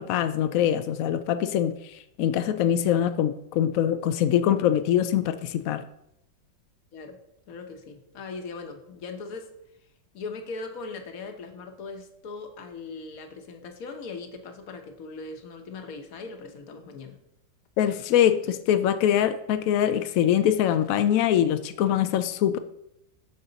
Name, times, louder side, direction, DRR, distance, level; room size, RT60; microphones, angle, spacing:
voice 1, 0.0-1.7 2.2-5.8 17.8-22.6, left 10 dB, 80° left, 10 dB, 0.7 m, -23 dB
voice 2, 7.5-9.5 10.1-17.2, left 4 dB, 55° left, 6 dB, 1.3 m, -39 dB
12.0 x 4.4 x 4.0 m, 0.80 s
omnidirectional pair, 2.0 m